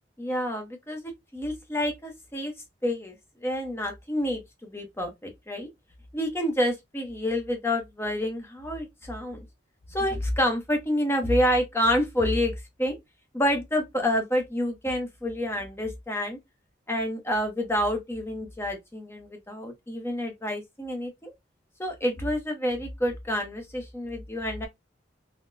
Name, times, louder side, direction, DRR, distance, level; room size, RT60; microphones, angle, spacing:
voice 1, 0.2-2.5 2.8-3.2 3.4-5.7 6.1-9.5 9.9-13.0 13.3-16.4 16.9-21.3 21.8-24.7, equal, 15° left, 0.7 m, -28 dB
3.9 x 2.1 x 2.5 m
head